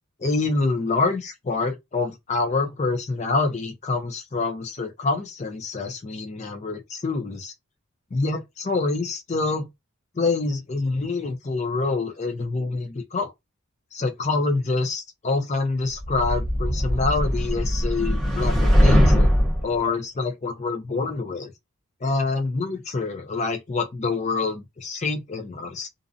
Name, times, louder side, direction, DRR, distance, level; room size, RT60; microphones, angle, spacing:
voice 1, 0.2-7.5 8.1-9.7 10.1-13.3 13.9-19.3 19.6-21.5 22.0-25.9, left 3 dB, 30° left, 0.4 m, -26 dB
sound 1, 16.0-19.7, equal, ahead, 0.7 m, -20 dB
2.5 x 2.0 x 2.5 m
head